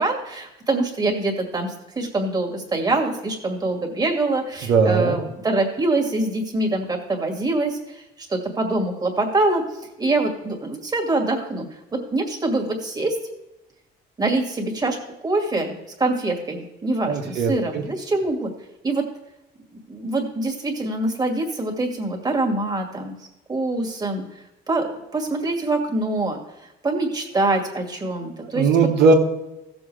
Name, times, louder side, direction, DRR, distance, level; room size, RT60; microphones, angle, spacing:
voice 1, 0.0-11.7 11.9-13.2 14.2-15.0 15.2-18.5 18.8-19.0 19.9-23.2 23.5-24.2 24.7-24.9 25.1-26.4 26.8-28.7, right 2 dB, 20° right, 1 dB, 2.2 m, -24 dB
voice 2, 4.7-5.2 17.1-17.8 28.4-29.1, right 4 dB, 80° right, 1 dB, 1.8 m, -19 dB
16.0 x 7.1 x 3.4 m, 0.95 s
cardioid pair, 125°, 18 cm